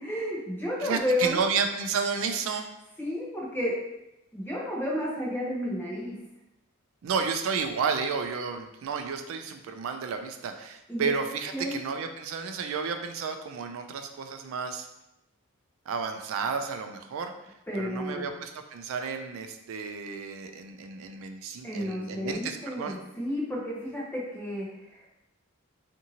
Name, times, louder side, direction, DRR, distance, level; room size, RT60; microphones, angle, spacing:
voice 1, 0.0-1.4 3.0-3.8 4.3-6.2 10.9-11.1 11.5-11.8 17.7-18.3 21.6-25.2, equal, 10° left, -5 dB, 0.7 m, -31 dB
voice 2, 0.8-2.7 7.0-14.9 15.9-17.3 17.8-23.0, right 5 dB, 65° right, 6 dB, 0.3 m, -32 dB
2.6 x 2.6 x 2.8 m, 0.89 s
head